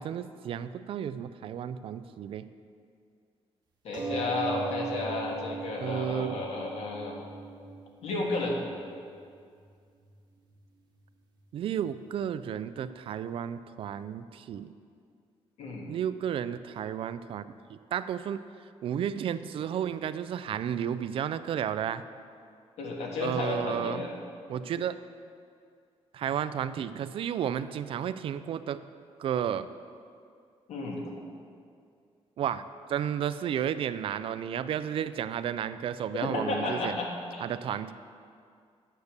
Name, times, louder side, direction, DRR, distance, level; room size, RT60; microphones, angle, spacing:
voice 1, 0.0-2.4 5.8-6.4 11.5-14.7 15.9-18.4 18.8-22.0 23.2-24.0 24.5-24.9 26.1-28.8 29.2-29.7 32.4-32.6 32.9-37.0 37.4-37.9, right 9 dB, 55° right, 13 dB, 0.4 m, -32 dB
voice 2, 3.8-7.1 8.0-8.6 15.6-15.9 22.8-24.1 30.7-31.0 36.2-37.4, left 2 dB, 90° left, -1 dB, 1.8 m, -32 dB
sound 1, 3.9-8.9 9.7-9.8 10.1-10.2, right 3 dB, 40° right, 1.5 m, -38 dB
9.4 x 6.7 x 6.6 m, 2.3 s
wide cardioid pair, 175°, 11 cm